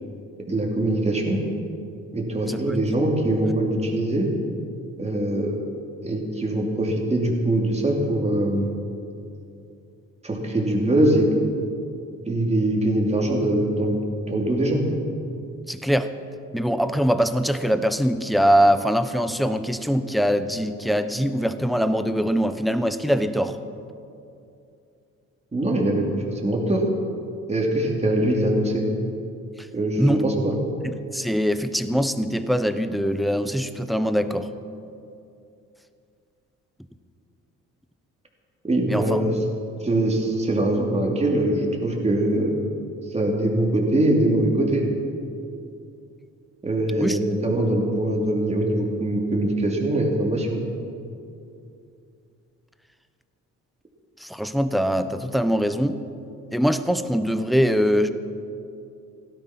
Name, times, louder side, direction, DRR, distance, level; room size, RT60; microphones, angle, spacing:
voice 1, 0.5-1.4 2.1-4.3 5.0-5.5 6.0-8.8 10.2-11.3 12.3-14.0 14.3-15.0 25.5-26.8 27.5-28.8 29.7-30.6 38.6-39.4 39.8-42.5 43.1-44.8 46.6-50.6, right 1 dB, 20° right, 0 dB, 2.8 m, -22 dB
voice 2, 15.7-16.1 16.5-23.6 30.0-30.2 31.1-34.5 38.9-39.2 47.0-47.2 54.2-56.0 56.5-58.1, equal, ahead, 10 dB, 0.8 m, -22 dB
17.0 x 12.5 x 5.9 m, 2.6 s
cardioid pair, 90°, 30 cm